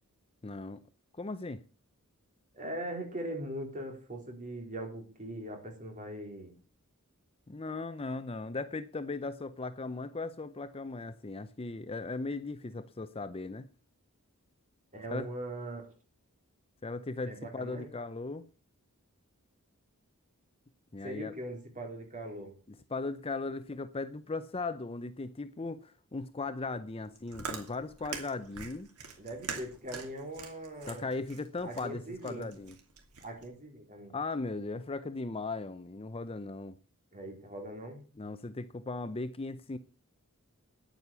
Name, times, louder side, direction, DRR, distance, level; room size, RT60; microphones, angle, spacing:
voice 1, 0.4-0.8 1.1-1.6 7.5-13.7 15.1-15.3 16.8-18.5 20.9-21.3 22.9-28.9 30.9-32.8 34.1-36.8 38.2-39.8, left 3 dB, 25° left, 0.6 m, -37 dB
voice 2, 2.5-6.5 14.9-15.9 17.2-17.9 21.0-22.5 29.2-31.1 31.6-32.5 33.2-34.2 37.1-38.0, right 1 dB, 35° right, 4.1 m, -41 dB
Chewing mastication, 27.0-33.5, right 5 dB, 85° right, 2.7 m, -44 dB
10.0 x 9.1 x 6.9 m
head